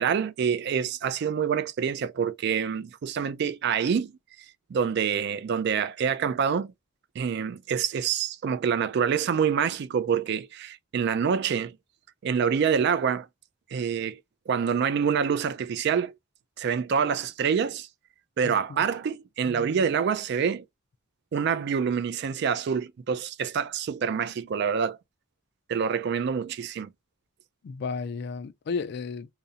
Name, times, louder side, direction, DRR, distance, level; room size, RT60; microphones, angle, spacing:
voice 1, 0.0-4.1 4.7-6.7 7.2-11.8 12.2-13.3 13.7-14.2 14.5-16.1 16.6-17.9 18.4-20.6 21.3-25.0 25.7-26.9, right 7 dB, 50° right, 0.3 m, -26 dB
voice 2, 18.4-18.8 27.6-29.3, left 5 dB, 50° left, 0.3 m, -33 dB
2.4 x 2.0 x 2.6 m
head